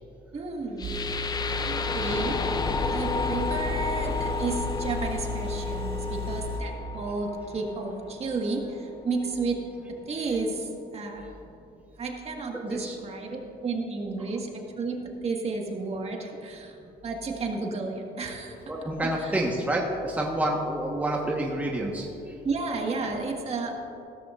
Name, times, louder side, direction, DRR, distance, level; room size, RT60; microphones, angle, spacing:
voice 1, 0.3-1.0 1.5-2.5 2.9-9.6 10.1-11.3 12.0-16.8 17.0-18.7 19.0-19.3 22.4-23.7, right 3 dB, 40° right, 1 dB, 1.6 m, -32 dB
sound 1, 0.8-8.8, left 4 dB, 25° left, 0.5 m, -32 dB
Engine, 0.8-6.6, left 2 dB, 70° right, 1.7 m, -33 dB
voice 2, 18.7-22.1, right 1 dB, 10° right, -1 dB, 1.2 m, -28 dB
16.0 x 13.5 x 2.5 m, 2.9 s
cardioid pair, 110°, 17 cm